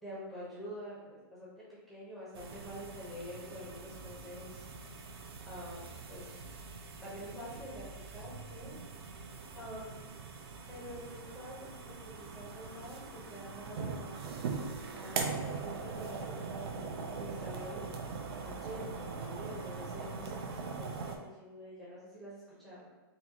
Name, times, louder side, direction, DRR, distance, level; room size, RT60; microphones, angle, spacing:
voice 1, 0.0-5.2 5.5-6.3 7.0-8.8 9.1-9.3 9.5-10.1 10.7-14.2 14.9-16.9 17.2-18.0 18.4-22.9, equal, ahead, -8 dB, 0.7 m, -47 dB
sound 1, 2.3-21.2, right 4 dB, 80° right, 0.5 m, -42 dB
4.1 x 2.6 x 2.8 m, 1.2 s
supercardioid pair, 180°, 13 cm